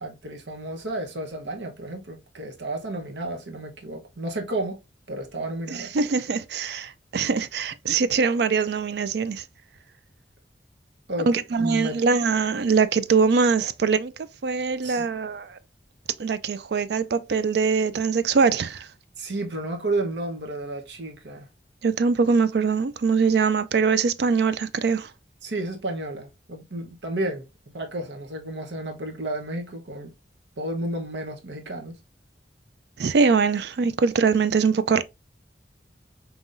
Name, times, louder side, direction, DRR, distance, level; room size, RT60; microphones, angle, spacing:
voice 1, 0.0-4.8 5.1-5.9 11.1-12.0 14.8-15.1 19.2-21.5 25.4-30.1 30.6-32.0, right 1 dB, 85° right, 1.0 m, -32 dB
voice 2, 5.7-9.4 11.3-14.1 14.4-15.6 16.2-18.9 21.8-25.1 33.0-35.0, right 5 dB, 70° right, 0.4 m, -22 dB
5.5 x 3.0 x 2.5 m
head